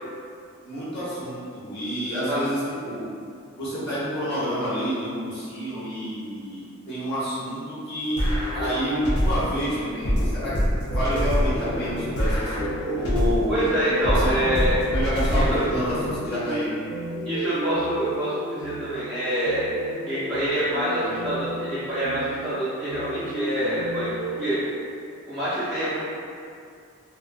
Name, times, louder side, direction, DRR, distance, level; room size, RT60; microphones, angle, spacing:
voice 1, 0.6-3.1 3.6-8.3 8.5-10.5 10.8-13.6 14.1-14.4 14.9-16.0 16.2-16.7, equal, 55° left, -12 dB, 1.0 m, -29 dB
sound 1, 8.2-9.6 10.0-13.6 14.0-16.2, equal, 85° left, 0.5 m, -25 dB
sound 2, 10.9-24.6, right 2 dB, 80° right, 0.3 m, -34 dB
voice 2, 13.5-14.8 15.3-15.6 17.2-19.6 20.1-24.1 24.4-24.6 25.3-26.0, equal, 5° left, -17 dB, 0.6 m, -26 dB
2.3 x 2.1 x 2.5 m, 2.4 s
head